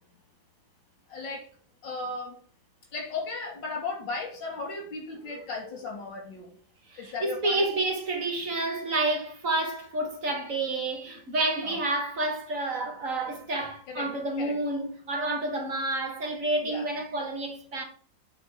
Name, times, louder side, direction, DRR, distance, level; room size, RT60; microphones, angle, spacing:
voice 1, 1.1-1.5 1.8-2.4 2.9-6.6 7.0-7.7 11.6-11.8 13.9-14.6 16.6-16.9, left 3 dB, 70° left, 3.4 m, -36 dB
voice 2, 5.2-5.7 6.9-17.8, right 2 dB, 45° right, 2.3 m, -29 dB
8.5 x 4.3 x 6.7 m
omnidirectional pair, 2.1 m